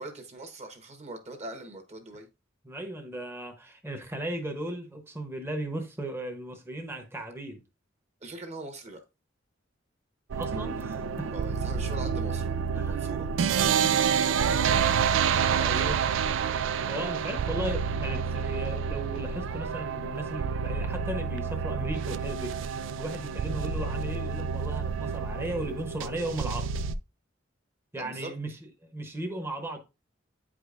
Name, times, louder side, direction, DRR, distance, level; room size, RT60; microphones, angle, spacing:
voice 1, 0.0-2.3 8.2-9.0 11.3-13.3 15.4-16.0 27.9-28.3, right 2 dB, 35° right, 1.2 m, -42 dB
voice 2, 2.6-7.6 10.3-11.3 12.8-13.0 13.8-13.9 14.2-14.8 15.6-16.1 16.9-22.6 23.0-26.7 27.9-28.5 28.8-29.8, right 1 dB, 15° right, 0.9 m, -36 dB
sound 1, 10.3-27.0, right 6 dB, 70° right, 0.4 m, -28 dB
8.7 x 5.0 x 2.5 m
head